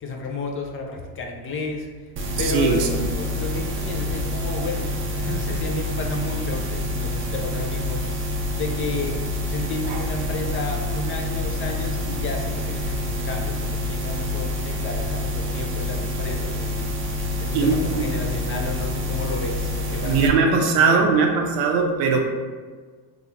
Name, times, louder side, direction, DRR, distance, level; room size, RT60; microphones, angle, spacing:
voice 1, 0.0-1.9 2.4-8.0 8.5-9.2 9.5-16.9 17.4-21.3, left 3 dB, 30° left, 1 dB, 0.4 m, -32 dB
sound 1, 2.2-20.3, left 1 dB, 25° right, 0.5 m, -27 dB
voice 2, 2.4-3.1 9.9-10.0 17.5-18.1 20.0-22.2, right 4 dB, 80° right, 3 dB, 0.6 m, -20 dB
2.8 x 2.4 x 2.8 m, 1.5 s
supercardioid pair, 80°, 48 cm